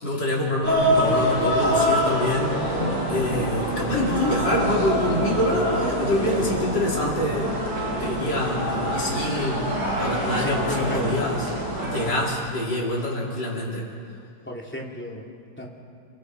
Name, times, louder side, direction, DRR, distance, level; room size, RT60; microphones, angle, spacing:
voice 1, 0.0-7.6 8.0-11.5 11.8-13.9, left 1 dB, 65° left, -4 dB, 5.1 m, -26 dB
sound 1, 0.6-12.2, equal, 75° right, 8.8 m, -26 dB
Drum, 2.8-12.1, left 2 dB, 45° left, 2.3 m, -36 dB
voice 2, 10.4-11.1 11.7-11.9 14.5-15.3 15.6-15.7, left 1 dB, 5° left, -2 dB, 2.8 m, -33 dB
30.0 x 23.0 x 4.8 m, 2.5 s
omnidirectional pair, 2.0 m